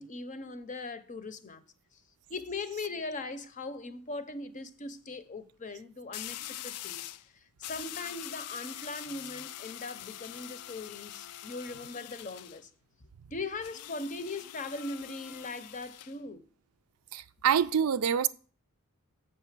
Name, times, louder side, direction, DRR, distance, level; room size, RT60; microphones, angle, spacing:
voice 1, 0.0-1.6 2.3-7.1 7.6-12.7 13.3-16.5, left 3 dB, 35° left, 0.6 m, -40 dB
sound 1, 3.0-3.3 6.1-7.3 7.6-12.6 13.6-16.2, left 13 dB, 85° left, 0.4 m, -44 dB
voice 2, 17.1-18.3, right 8 dB, 80° right, 0.4 m, -26 dB
7.7 x 5.7 x 5.9 m
head